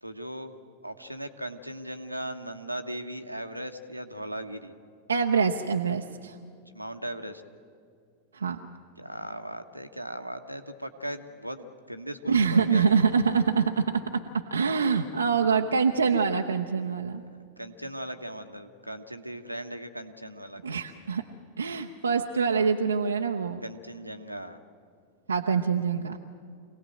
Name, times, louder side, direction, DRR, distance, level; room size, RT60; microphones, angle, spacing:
voice 1, 0.0-4.7 6.7-7.4 9.0-13.1 17.3-21.2 23.6-24.6, right 1 dB, 90° right, 7 dB, 1.1 m, -38 dB
voice 2, 5.1-6.4 8.3-8.6 12.3-17.2 20.6-21.2 21.6-23.6 25.3-26.2, right 5 dB, 75° right, 3 dB, 0.7 m, -25 dB
26.0 x 17.5 x 7.7 m, 2.2 s
figure-of-eight pair, 90°, 0 cm